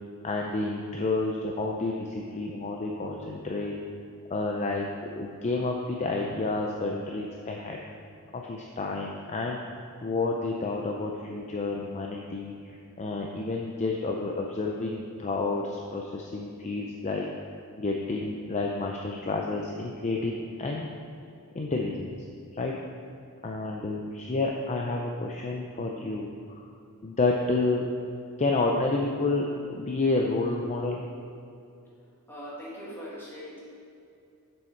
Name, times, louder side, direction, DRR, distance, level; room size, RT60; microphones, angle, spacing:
voice 1, 0.2-3.8 4.3-7.8 8.3-9.8 10.0-17.3 17.8-20.9 21.5-22.1 22.5-22.8 23.4-26.6 27.0-27.9 28.4-31.0, left 3 dB, 30° left, 0 dB, 0.5 m, -30 dB
voice 2, 32.3-33.6, equal, 10° left, -7 dB, 2.0 m, -40 dB
7.4 x 6.3 x 4.5 m, 2.6 s
head